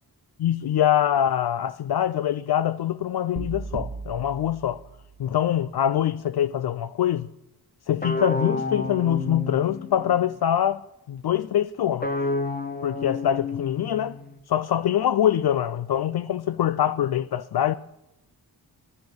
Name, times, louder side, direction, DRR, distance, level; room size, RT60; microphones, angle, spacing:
voice 1, 0.4-4.8 5.2-7.3 7.9-12.1 12.8-14.2 14.5-17.7, left 10 dB, 65° left, 0.5 m, -24 dB
sound 1, 3.4-5.5, right 4 dB, 35° right, 1.1 m, -37 dB
sound 2, 8.0-10.3 12.0-14.4, left 2 dB, 20° left, 1.2 m, -30 dB
10.5 x 10.0 x 7.9 m
cardioid pair, 60°, 41 cm